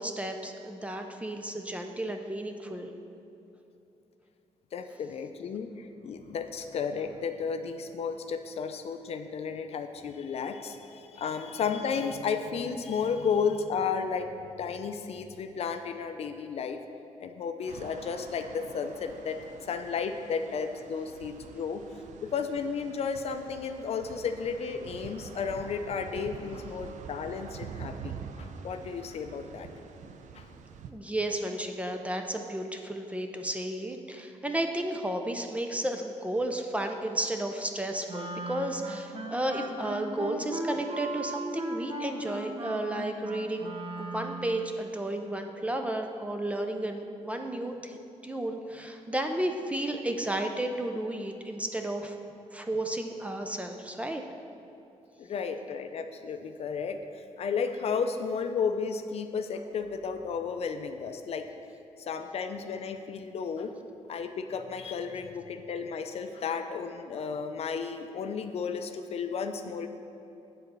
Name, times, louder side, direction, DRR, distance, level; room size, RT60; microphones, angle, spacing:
voice 1, 0.0-2.9 30.9-43.7 44.0-52.2 52.5-54.2, right 1 dB, 10° right, 4 dB, 0.4 m, -33 dB
voice 2, 4.7-16.8 17.2-19.4 19.7-21.8 22.3-29.7 30.3-30.5 55.2-61.5 62.0-63.7 64.1-69.9, left 6 dB, 55° left, 7 dB, 0.5 m, -33 dB
sound 1, 17.7-30.9, right 6 dB, 75° right, 0.5 m, -46 dB
Wind instrument woodwind instrument, 38.1-44.7, right 2 dB, 45° right, 0.9 m, -38 dB
8.8 x 4.1 x 6.7 m, 2.9 s
wide cardioid pair, 160°, 13 cm